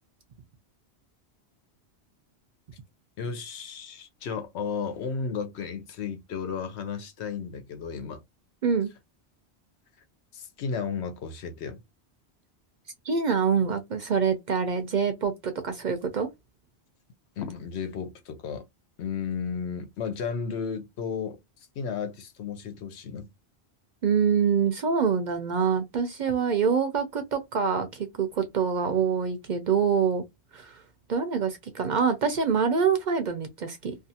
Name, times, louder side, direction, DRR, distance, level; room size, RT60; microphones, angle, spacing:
voice 1, 3.2-8.2 10.3-11.8 17.4-18.7 19.0-21.4 21.8-23.3, left 6 dB, 80° left, 0.9 m, -33 dB
voice 2, 13.0-16.3 24.0-30.2 30.5-30.8 31.1-34.0, right 6 dB, 55° right, 0.5 m, -25 dB
2.4 x 2.4 x 2.7 m
omnidirectional pair, 1.1 m